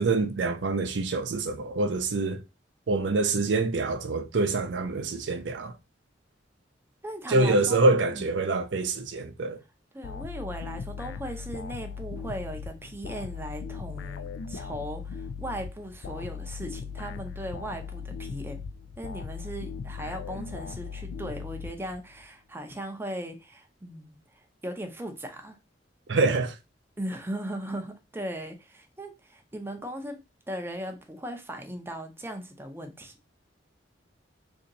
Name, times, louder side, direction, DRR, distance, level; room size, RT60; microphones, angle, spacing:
voice 1, 0.0-2.4 2.9-5.7 7.3-9.6 26.1-26.5, right 3 dB, 70° right, 0.5 m, -25 dB
voice 2, 7.0-8.5 9.9-18.6 19.0-25.6 27.0-30.2 30.5-33.3, right 1 dB, 15° right, 0.6 m, -38 dB
sound 1, 10.0-22.2, left 6 dB, 80° left, 0.3 m, -38 dB
2.8 x 2.6 x 3.9 m
head